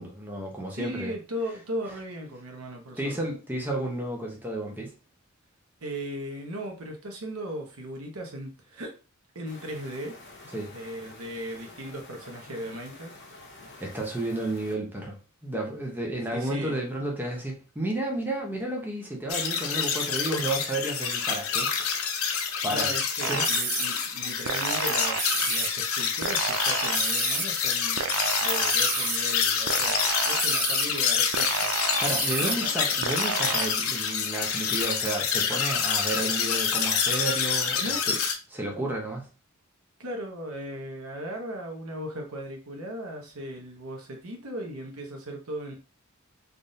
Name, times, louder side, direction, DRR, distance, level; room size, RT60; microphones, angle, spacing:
voice 1, 0.0-1.1 3.0-4.9 10.5-10.7 13.8-15.2 15.4-22.1 22.6-22.9 23.3-23.4 32.0-37.8 38.1-38.2 38.5-39.3, right 1 dB, 10° right, -1 dB, 0.7 m, -32 dB
voice 2, 0.7-3.2 5.8-9.0 9.3-10.1 10.7-13.1 13.6-13.7 16.3-16.8 22.7-28.0 28.4-31.8 32.3-32.7 37.8-38.1 40.0-45.7, equal, 80° right, 2 dB, 0.9 m, -37 dB
sound 1, 9.4-14.7, left 2 dB, 55° left, 0.9 m, -48 dB
sound 2, 19.3-38.3, left 6 dB, 75° left, 0.6 m, -27 dB
sound 3, 23.2-23.9 24.5-25.7 26.2-27.5 28.0-29.2 29.7-30.9 31.3-32.6 33.0-33.7, right 8 dB, 65° right, 0.4 m, -30 dB
3.5 x 2.6 x 2.6 m, 0.33 s
head